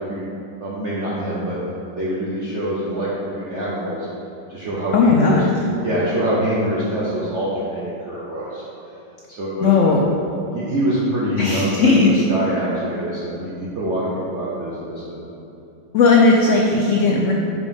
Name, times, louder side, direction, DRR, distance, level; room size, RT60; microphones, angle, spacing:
voice 1, 0.6-3.1 3.3-4.1 4.5-5.4 5.8-8.6 9.3-10.0 10.5-11.9 12.3-15.3, right 1 dB, 50° right, -7 dB, 1.0 m, -25 dB
voice 2, 4.9-5.5 9.6-10.0 11.4-12.2 15.9-17.3, left 4 dB, 80° left, -1 dB, 0.6 m, -16 dB
5.3 x 4.8 x 5.2 m, 2.8 s
omnidirectional pair, 2.0 m